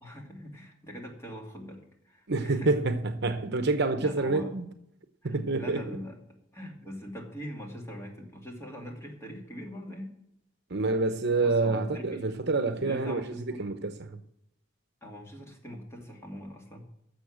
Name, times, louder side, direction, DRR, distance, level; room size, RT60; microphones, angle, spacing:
voice 1, 0.0-2.7 4.0-4.5 5.2-6.2 6.5-10.1 11.4-12.3 12.7-13.7 15.0-16.8, equal, 15° left, 2.5 m, -42 dB
voice 2, 2.3-4.7 5.2-5.8 10.7-14.2, right 3 dB, 60° right, 0.9 m, -28 dB
11.5 x 7.1 x 7.4 m
head